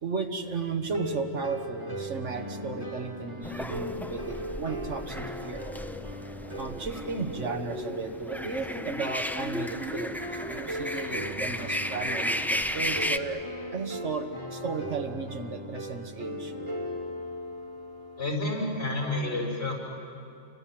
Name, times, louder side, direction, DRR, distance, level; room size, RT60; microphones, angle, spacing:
voice 1, 0.0-5.7 6.5-13.5 13.7-16.5, right 4 dB, 90° right, 6 dB, 1.9 m, -35 dB
sound 1, 0.9-18.9, equal, 25° right, 2.2 m, -39 dB
sound 2, 3.4-13.2, left 1 dB, ahead, 0.5 m, -34 dB
voice 2, 18.2-19.7, left 2 dB, 65° left, -1 dB, 6.3 m, -29 dB
29.0 x 25.0 x 7.7 m, 2.5 s
omnidirectional pair, 1.2 m